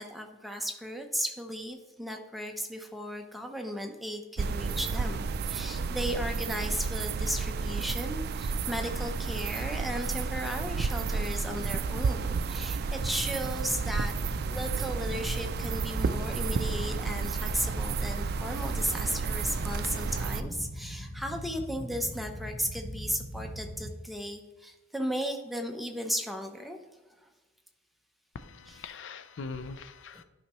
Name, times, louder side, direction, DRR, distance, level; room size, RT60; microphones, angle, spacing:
voice 1, 0.0-26.8 28.7-28.9, equal, ahead, 3 dB, 0.7 m, -35 dB
sound 1, 4.4-20.4, right 4 dB, 55° right, 0.3 m, -32 dB
sound 2, 13.0-23.9, equal, 50° left, 1.0 m, -40 dB
voice 2, 28.3-30.2, left 4 dB, 70° left, 11 dB, 0.4 m, -42 dB
11.5 x 5.6 x 3.0 m, 1.2 s
head